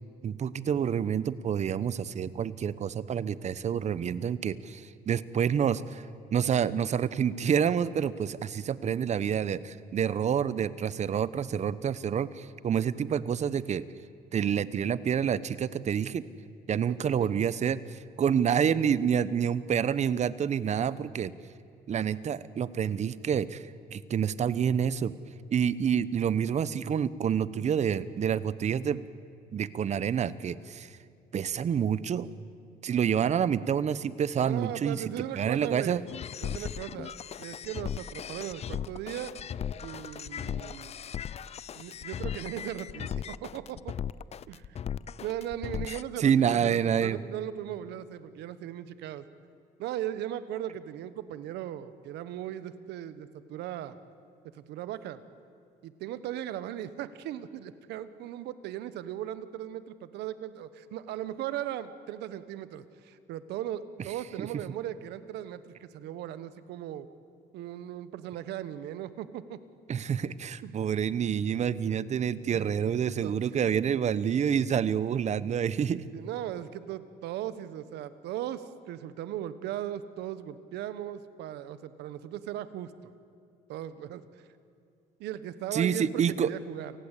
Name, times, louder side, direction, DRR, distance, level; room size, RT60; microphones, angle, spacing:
voice 1, 0.2-6.0 6.3-13.8 14.3-16.2 16.7-21.3 21.9-23.6 23.9-25.1 25.5-29.0 29.5-30.9 31.3-32.3 32.8-36.0 46.2-47.2 69.9-76.1 85.7-86.5, right 8 dB, 40° right, 17 dB, 1.0 m, -28 dB
voice 2, 34.4-36.1 36.4-39.3 39.8-40.9 41.7-43.9 44.5-44.7 45.2-49.3 49.8-54.0 54.5-55.2 55.8-67.1 67.5-69.6 70.6-70.8 72.5-72.7 73.2-73.5 76.1-83.1 83.7-84.5 85.2-86.9, right 11 dB, 80° right, 13 dB, 1.4 m, -38 dB
sound 1, 36.1-46.0, left 8 dB, 40° left, 0.6 m, -37 dB
29.0 x 19.0 x 8.4 m, 2.4 s
cardioid pair, 110°, 17 cm